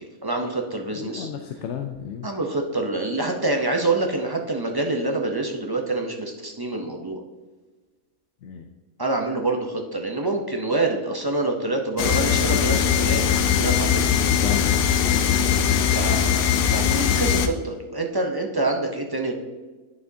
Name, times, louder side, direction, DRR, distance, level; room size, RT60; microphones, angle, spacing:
voice 1, 0.0-1.3 2.2-7.2 9.0-13.2 13.5-14.1 15.9-19.3, right 2 dB, 30° right, 2 dB, 0.4 m, -26 dB
voice 2, 1.0-2.3 8.4-8.7 14.4-15.3, left 7 dB, 65° left, 5 dB, 0.8 m, -33 dB
sound 1, 12.0-17.5, left 8 dB, 85° left, 1.1 m, -20 dB
9.0 x 6.8 x 2.7 m, 1.3 s
omnidirectional pair, 1.4 m